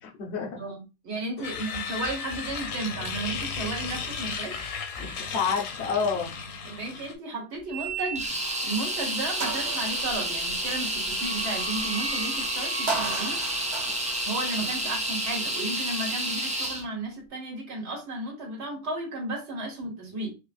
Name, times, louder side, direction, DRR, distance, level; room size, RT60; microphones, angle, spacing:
voice 1, 0.0-0.6 1.5-1.6 5.0-6.3, left 5 dB, 60° left, 1.2 m, -29 dB
voice 2, 0.5-4.7 6.6-13.4 14.2-20.4, right 2 dB, 60° right, 1.8 m, -34 dB
sound 1, 1.4-7.1, left 5 dB, 85° left, 1.1 m, -34 dB
sound 2, 7.7-8.6 9.0-9.1 9.4-15.5, right 4 dB, 40° right, 0.9 m, -36 dB
sound 3, 8.1-16.8, right 1 dB, 10° right, 0.4 m, -30 dB
4.3 x 2.4 x 2.4 m
omnidirectional pair, 1.3 m